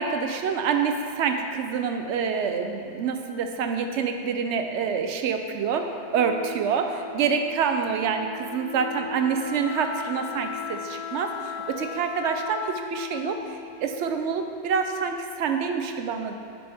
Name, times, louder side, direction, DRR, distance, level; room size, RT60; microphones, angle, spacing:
voice 1, 0.0-16.4, right 6 dB, 85° right, 6 dB, 0.9 m, -27 dB
Wind instrument woodwind instrument, 6.1-14.8, left 5 dB, 80° left, 0.9 m, -37 dB
10.0 x 5.6 x 3.5 m, 2.5 s
omnidirectional pair, 1.2 m